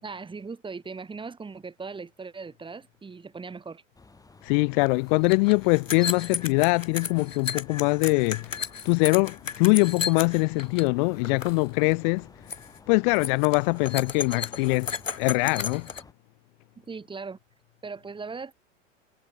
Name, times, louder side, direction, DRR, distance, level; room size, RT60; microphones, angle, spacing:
voice 1, 0.0-3.8 16.8-17.4 17.8-18.5, right 4 dB, 15° right, 4.5 m, -39 dB
sound 1, 3.9-16.1, left 3 dB, 10° left, 4.0 m, -53 dB
voice 2, 4.4-12.3 12.9-15.9, left 31 dB, 40° left, 0.8 m, -23 dB
sound 2, 4.8-4.9 5.1-10.9 11.1-11.6 11.9-12.2 12.5-12.8 13.1-16.0, left 6 dB, 85° left, 1.4 m, -34 dB
figure-of-eight pair, 95°, 38 cm